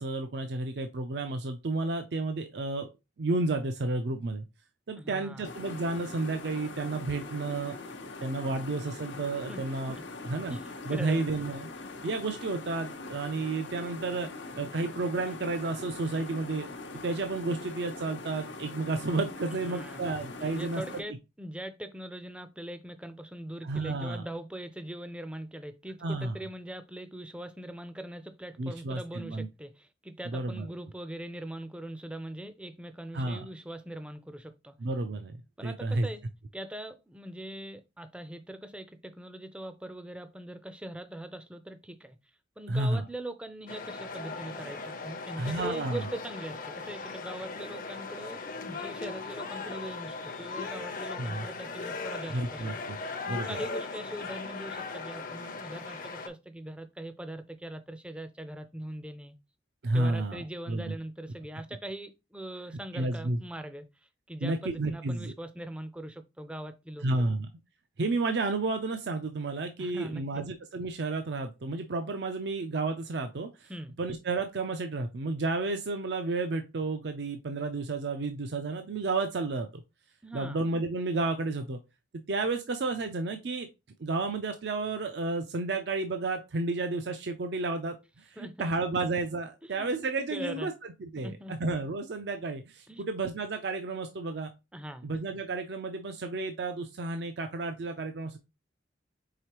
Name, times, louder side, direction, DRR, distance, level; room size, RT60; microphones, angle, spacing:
voice 1, 0.0-2.9 3.2-4.4 4.9-7.8 8.2-10.0 10.2-10.6 10.9-11.7 12.0-14.3 14.5-16.7 17.0-21.0 23.6-24.2 26.0-26.4 28.6-29.5 30.3-30.7 33.1-33.5 34.8-35.4 35.6-36.1 42.7-43.0 45.4-46.0 51.2-51.5 52.3-53.0 53.3-53.6 59.8-60.9 62.9-63.4 64.4-65.3 67.0-67.5 68.0-73.7 74.0-79.8 80.3-81.8 82.3-83.7 84.0-90.7 91.0-94.5 95.0-98.4, right 3 dB, 60° right, 0.5 m, -31 dB
voice 2, 5.0-5.5 9.5-9.6 9.9-10.0 10.5-11.2 19.6-20.0 20.4-34.8 35.6-36.2 36.5-42.2 42.6-52.6 53.0-59.4 59.9-63.9 64.3-67.1 69.8-70.4 73.7-73.9 80.2-80.6 88.4-88.7 89.6-89.9 90.3-90.7 91.2-91.5 92.9-93.0 94.7-95.1, right 1 dB, 5° right, 0.5 m, -41 dB
sound 1, 5.4-21.0, left 3 dB, 75° left, 0.8 m, -42 dB
sound 2, 43.7-56.3, left 4 dB, 45° left, 0.6 m, -38 dB
4.9 x 3.6 x 3.0 m
head